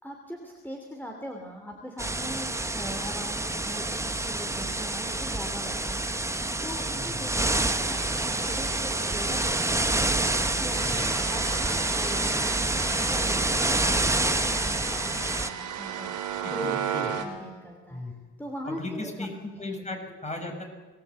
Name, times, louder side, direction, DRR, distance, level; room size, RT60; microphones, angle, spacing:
voice 1, 0.0-6.4 6.6-16.3 16.5-16.7 17.2-18.0 18.4-19.3 19.5-19.7, equal, 5° left, 2 dB, 3.3 m, -41 dB
sound 1, 2.0-15.5, right 2 dB, 10° right, 1.2 m, -27 dB
voice 2, 6.9-7.2 10.8-11.0 16.4-17.1 17.9-18.1 18.6-19.3 19.6-20.6, left 2 dB, 25° left, 3 dB, 6.8 m, -36 dB
sound 2, 7.8-17.2, right 9 dB, 90° right, 3.4 m, -36 dB
25.5 x 18.5 x 8.6 m, 1.4 s
cardioid pair, 90°, 30 cm